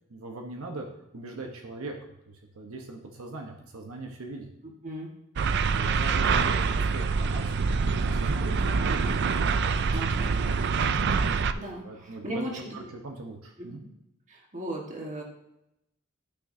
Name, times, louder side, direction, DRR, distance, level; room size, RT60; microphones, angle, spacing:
voice 1, 0.1-0.9 1.1-1.9 2.3-4.5 5.7-10.1 11.8-12.4 12.7-13.8, right 2 dB, 85° right, 2 dB, 1.1 m, -40 dB
sound 1, 5.4-11.5, right 5 dB, 55° right, 0.4 m, -25 dB
voice 2, 9.9-10.3 11.5-12.8 13.6-13.7 14.3-15.2, right 1 dB, 35° right, -1 dB, 1.7 m, -36 dB
12.0 x 6.1 x 2.8 m, 0.85 s
head